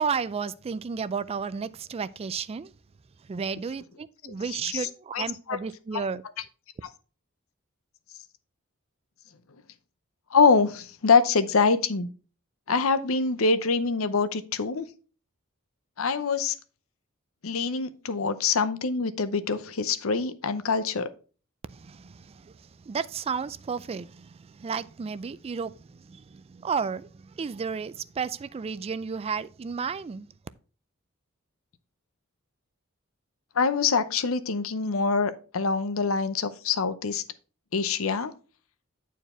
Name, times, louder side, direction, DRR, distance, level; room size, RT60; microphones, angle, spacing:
voice 1, 0.0-2.7 3.2-6.2 21.7-30.3, right 6 dB, 30° right, 0.3 m, -33 dB
voice 2, 5.1-5.6 10.3-12.1 12.7-14.9 16.0-16.5 17.4-21.1 33.6-37.2 37.7-38.3, left 4 dB, 75° left, 0.7 m, -24 dB
9.1 x 4.6 x 4.3 m
head